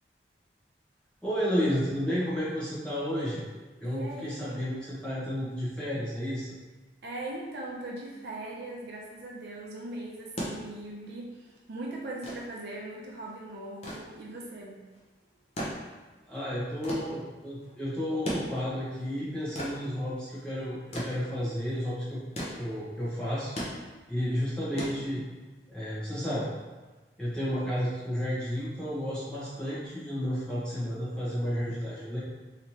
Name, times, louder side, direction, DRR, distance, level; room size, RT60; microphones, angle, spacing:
voice 1, 1.2-3.4 3.8-6.5 16.3-22.2 22.6-23.5 24.1-25.2 25.7-26.5 27.2-32.2, equal, 5° left, -10 dB, 1.0 m, -32 dB
voice 2, 3.8-4.6 7.0-14.8, right 2 dB, 65° right, -2 dB, 0.5 m, -40 dB
sound 1, 10.1-25.6 26.9-27.0, equal, 35° left, 0.6 m, -40 dB
3.2 x 2.8 x 2.9 m, 1.2 s
head